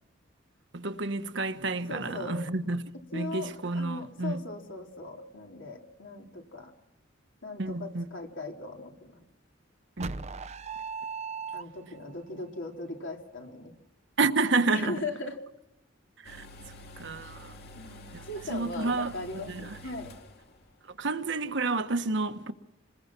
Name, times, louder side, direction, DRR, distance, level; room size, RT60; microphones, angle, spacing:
voice 1, 0.7-2.8 3.1-4.3 7.6-8.0 10.0-10.1 14.2-14.9 16.2-16.5 17.0-17.5 18.1-18.2 18.5-19.1 19.5-19.8 21.0-22.5, right 3 dB, 65° right, 1.3 m, -29 dB
voice 2, 1.9-2.4 3.1-6.7 7.4-9.2 11.5-13.7 14.7-15.4 17.2-17.3 17.8-20.1, left 2 dB, 75° left, 3.6 m, -39 dB
sound 1, 10.0-12.1, right 5 dB, 35° right, 0.7 m, -37 dB
sound 2, 16.2-20.7 21.0-21.1, left 1 dB, 55° left, 2.3 m, -48 dB
27.0 x 21.0 x 6.1 m
head